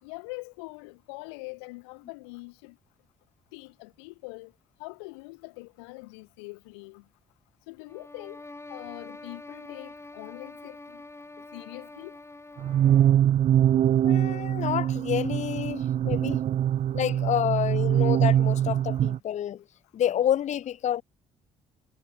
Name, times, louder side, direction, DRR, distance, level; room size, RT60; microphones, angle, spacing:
voice 1, 0.0-2.8 3.5-4.5 4.8-7.0 7.7-11.0 11.5-12.2, left 28 dB, 90° left, 2.3 m, -43 dB
sound 1, 7.9-13.3, left 2 dB, 20° left, 7.7 m, -45 dB
sound 2, 12.6-19.2, right 10 dB, 55° right, 0.6 m, -23 dB
voice 2, 14.0-16.4 16.9-19.6 19.9-21.0, left 10 dB, 55° left, 0.8 m, -28 dB
hypercardioid pair, 55°, 14 cm